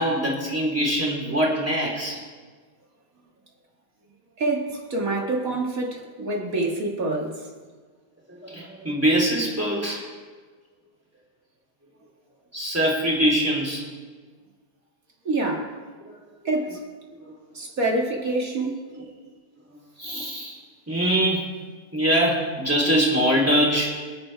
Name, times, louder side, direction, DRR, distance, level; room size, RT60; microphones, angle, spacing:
voice 1, 0.0-2.2 6.4-6.5 8.3-10.1 12.5-13.9 16.0-16.2 18.9-19.0 19.7-20.6 20.9-21.5 21.9-24.0, equal, 10° right, -3 dB, 3.5 m, -23 dB
voice 2, 4.4-7.5 15.3-15.7 16.5-16.8 17.5-18.8, right 2 dB, 60° right, 0 dB, 2.3 m, -26 dB
29.0 x 9.6 x 3.4 m, 1.5 s
omnidirectional pair, 1.7 m